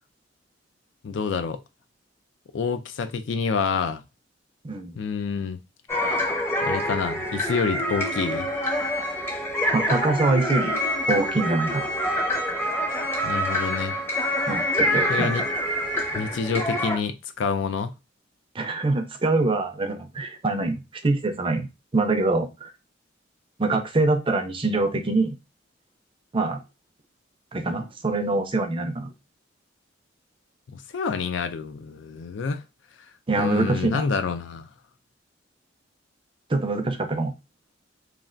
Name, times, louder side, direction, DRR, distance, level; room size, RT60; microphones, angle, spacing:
voice 1, 1.0-1.6 2.5-4.0 5.0-5.6 6.6-8.5 13.2-14.0 15.1-15.4 16.1-17.9 30.7-32.6 33.3-34.7, left 5 dB, 70° left, 0.4 m, -27 dB
voice 2, 4.6-5.0 9.7-10.8 11.1-11.9 14.5-15.3 18.5-20.8 21.0-21.7 21.9-22.7 23.6-25.4 26.3-26.6 27.5-29.1 33.3-34.0 36.5-37.3, right 2 dB, 30° right, 0.5 m, -24 dB
sound 1, 5.9-17.0, equal, 10° left, 0.7 m, -26 dB
3.2 x 2.4 x 2.5 m
head